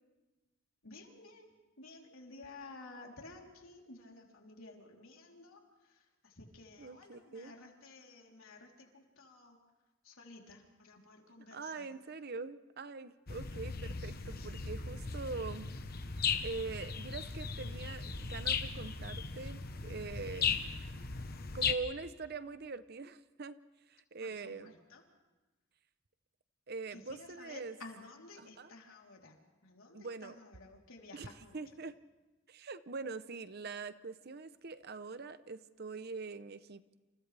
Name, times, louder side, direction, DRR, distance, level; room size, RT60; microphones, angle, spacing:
voice 1, 0.8-1.5 1.8-5.6 6.2-9.6 10.1-11.9 24.2-25.0 26.9-29.4 29.6-31.6, left 3 dB, 85° left, 0 dB, 3.6 m, -53 dB
voice 2, 6.8-7.5 11.5-15.7 16.4-20.6 21.5-23.6 23.9-24.7 26.7-27.8 28.4-28.7 29.9-30.4 31.1-31.9 32.5-37.0, right 4 dB, 50° right, 13 dB, 0.8 m, -43 dB
sound 1, 13.3-21.7, left 5 dB, 50° left, 1.1 m, -37 dB
28.5 x 28.5 x 3.4 m, 1.2 s
head